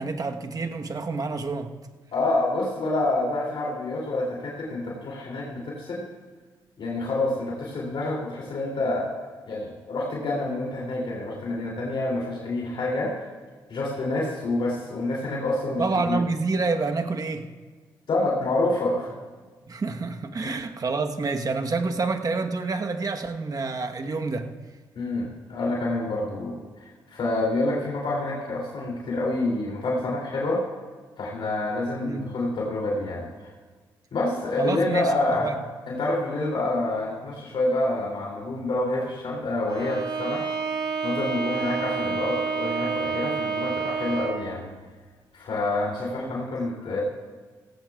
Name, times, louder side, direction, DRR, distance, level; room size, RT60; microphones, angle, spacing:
voice 1, 0.0-1.7 15.8-17.5 19.7-24.5 32.0-32.3 34.6-35.1 35.4-35.6 46.2-46.4, right 3 dB, 40° right, 1.2 m, -28 dB
voice 2, 2.1-6.1 6.8-13.1 13.7-16.2 18.1-19.1 20.3-20.5 24.9-30.6 31.2-33.5 34.1-35.5 35.9-40.4 41.0-44.7 45.3-47.0, left 2 dB, 60° left, 2.9 m, -27 dB
Bowed string instrument, 39.7-44.5, right 5 dB, 60° right, 3.2 m, -29 dB
17.0 x 16.0 x 2.4 m
hypercardioid pair, 45°, 10 cm